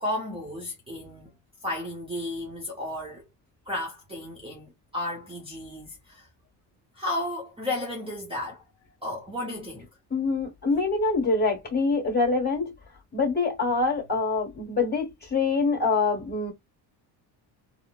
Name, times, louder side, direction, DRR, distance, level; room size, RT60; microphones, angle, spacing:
voice 1, 0.0-1.4 1.6-3.3 3.7-6.3 6.9-8.6 9.0-9.9, left 1 dB, 15° right, 0.8 m, -33 dB
voice 2, 10.1-12.7 13.1-16.5, left 3 dB, 25° left, 1.7 m, -25 dB
3.8 x 2.1 x 2.3 m
cardioid pair, 125°, 42 cm